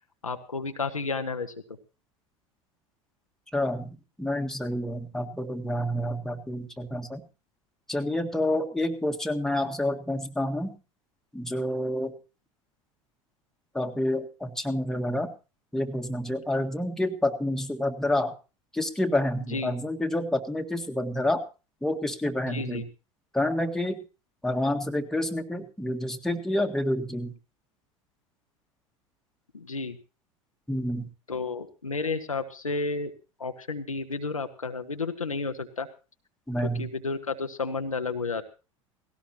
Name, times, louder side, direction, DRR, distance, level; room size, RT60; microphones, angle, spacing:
voice 1, 0.2-1.5 19.5-19.7 22.5-22.8 29.5-30.0 31.3-33.1 33.4-35.9 36.6-38.4, left 4 dB, 90° left, 6 dB, 1.1 m, -31 dB
voice 2, 3.5-7.2 7.9-10.7 11.3-12.1 13.7-15.3 15.7-18.3 18.7-21.4 21.8-22.8 23.3-24.0 24.4-27.3 30.7-31.1 36.5-36.9, left 1 dB, 5° left, 4 dB, 1.7 m, -28 dB
18.0 x 17.0 x 2.9 m, 0.32 s
figure-of-eight pair, 75°, 17 cm